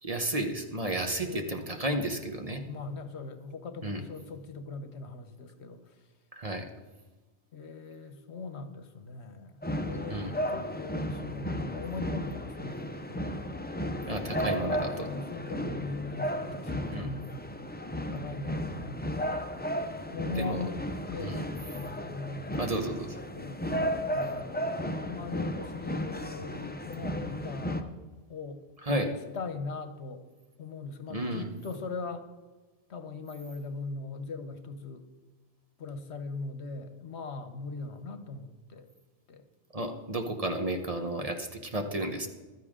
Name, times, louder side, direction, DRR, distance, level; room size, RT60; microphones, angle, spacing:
voice 1, 0.0-2.6 3.8-4.0 6.3-6.7 10.1-10.3 14.1-15.1 16.9-17.1 20.4-20.6 21.2-21.4 22.6-23.2 28.8-29.1 31.1-31.5 39.7-42.3, right 1 dB, 35° right, 5 dB, 1.1 m, -32 dB
voice 2, 1.2-1.7 2.6-6.0 7.5-13.4 14.4-17.5 18.1-19.3 20.1-22.5 23.3-23.6 23.9-27.9 28.3-30.3 30.6-32.3 32.9-35.1 35.8-38.9 39.3-39.4, left 3 dB, 75° left, 9 dB, 1.3 m, -40 dB
sound 1, 9.6-27.8, equal, 10° left, 0.5 m, -34 dB
15.0 x 12.5 x 3.7 m, 1.3 s
omnidirectional pair, 1.2 m